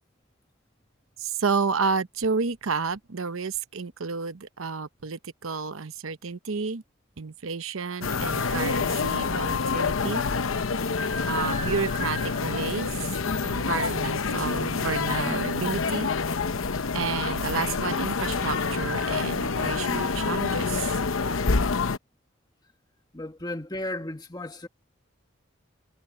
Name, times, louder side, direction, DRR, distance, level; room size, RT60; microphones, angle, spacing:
voice 1, 1.2-6.8 7.2-10.2 11.3-12.9 13.4-16.1 16.9-20.9, right 5 dB, 90° right, 0.8 m, -30 dB
sound 1, 8.0-22.0, left 4 dB, 85° left, 0.9 m, -27 dB
sound 2, 11.4-14.3, right 2 dB, 35° right, 1.2 m, -40 dB
voice 2, 23.1-24.7, left 1 dB, 20° left, 1.6 m, -34 dB
head